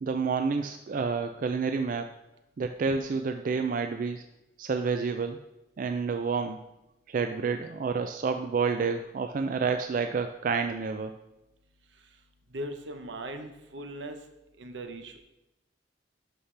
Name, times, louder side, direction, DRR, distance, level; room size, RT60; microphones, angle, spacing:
voice 1, 0.0-2.1 2.6-4.2 4.6-5.4 5.8-6.6 7.1-11.1, right 5 dB, 50° right, 7 dB, 0.3 m, -29 dB
voice 2, 12.5-14.2 14.6-15.2, right 1 dB, 80° right, 6 dB, 1.0 m, -39 dB
11.5 x 5.6 x 3.3 m, 0.94 s
head